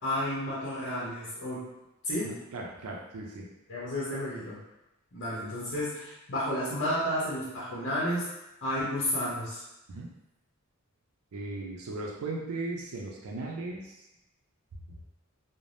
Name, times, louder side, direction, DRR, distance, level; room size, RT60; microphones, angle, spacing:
voice 1, 0.0-1.7 2.0-2.3 3.7-4.6 5.1-8.3 8.6-9.6, left 1 dB, 55° left, -8 dB, 0.7 m, -31 dB
voice 2, 2.2-3.5 9.9-10.1 11.3-14.0 14.9-15.0, right 2 dB, 90° right, -1 dB, 0.4 m, -37 dB
2.6 x 2.1 x 3.2 m, 0.93 s
head